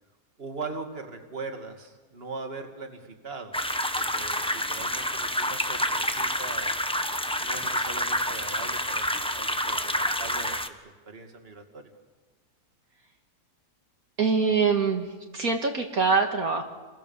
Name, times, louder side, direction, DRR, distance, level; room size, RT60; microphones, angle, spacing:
voice 1, 0.4-3.6 4.0-6.8 7.4-11.8, right 3 dB, 35° right, 5 dB, 2.5 m, -40 dB
sound 1, 3.5-10.7, equal, 5° left, 1.0 m, -28 dB
voice 2, 14.2-16.6, right 5 dB, 60° right, 3 dB, 2.2 m, -24 dB
28.5 x 22.0 x 7.2 m, 1.3 s
omnidirectional pair, 1.7 m